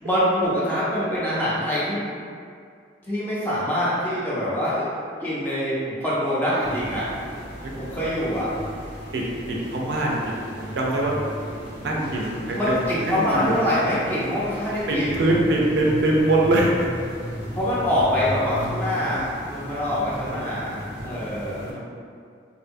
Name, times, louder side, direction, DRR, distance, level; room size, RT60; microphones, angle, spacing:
voice 1, 0.0-2.1 3.1-4.9 5.2-7.1 7.8-8.5 12.5-15.3 17.5-20.8 21.0-21.7, equal, 10° left, -9 dB, 0.5 m, -24 dB
sound 1, 6.6-21.7, equal, 90° left, 1.5 m, -35 dB
voice 2, 9.1-10.2 10.6-11.1 11.8-12.8 13.1-13.5 14.9-16.9 19.1-19.3 20.1-20.4 21.7-21.8, right 1 dB, 65° right, -2 dB, 0.4 m, -23 dB
2.6 x 2.1 x 2.5 m, 2.2 s
head